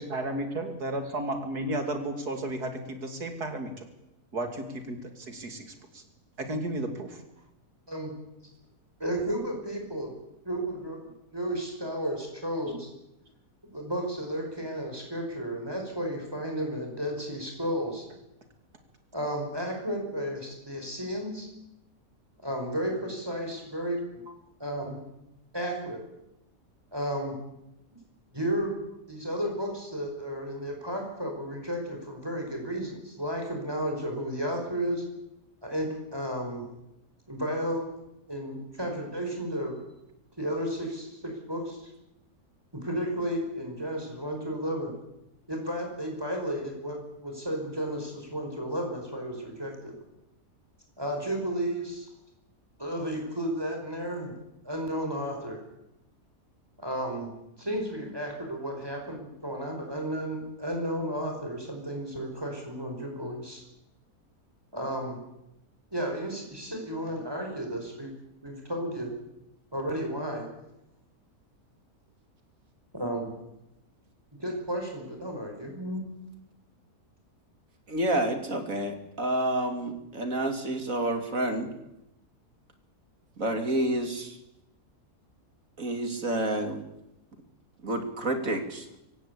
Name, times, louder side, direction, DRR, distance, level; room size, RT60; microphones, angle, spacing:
voice 1, 0.0-3.9 4.3-5.7 5.9-6.0 6.4-7.2, right 1 dB, 90° right, 6 dB, 3.4 m, -33 dB
voice 2, 9.0-10.1 10.5-11.0 11.3-12.9 13.7-18.1 19.1-21.5 22.4-24.0 24.6-25.0 25.5-26.0 26.9-27.4 28.3-28.8 29.1-35.0 35.6-36.6 37.3-37.8 38.3-39.8 40.4-41.9 42.7-44.9 45.5-49.9 51.0-52.1 52.8-54.3 54.6-55.6 56.8-57.3 57.6-63.6 64.7-65.2 65.9-68.1 68.4-69.1 69.7-70.5 72.9-73.3 74.4-76.1, equal, 15° right, 2 dB, 5.5 m, -33 dB
voice 3, 77.9-81.7 83.4-84.4 85.8-86.8 87.8-88.8, right 1 dB, 60° right, 6 dB, 3.0 m, -29 dB
24.5 x 17.0 x 8.4 m, 0.87 s
omnidirectional pair, 1.6 m